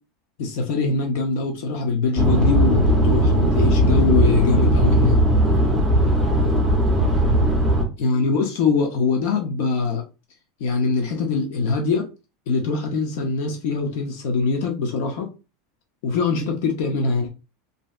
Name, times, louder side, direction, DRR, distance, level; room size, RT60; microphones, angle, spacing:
voice 1, 0.4-5.2 8.0-10.0 10.6-12.1 12.5-15.3 16.0-17.3, left 4 dB, 60° left, 3 dB, 0.7 m, -23 dB
sound 1, 2.2-7.8, right 1 dB, ahead, 0.7 m, -18 dB
3.1 x 2.7 x 2.3 m, 0.30 s
supercardioid pair, 160°, 0 cm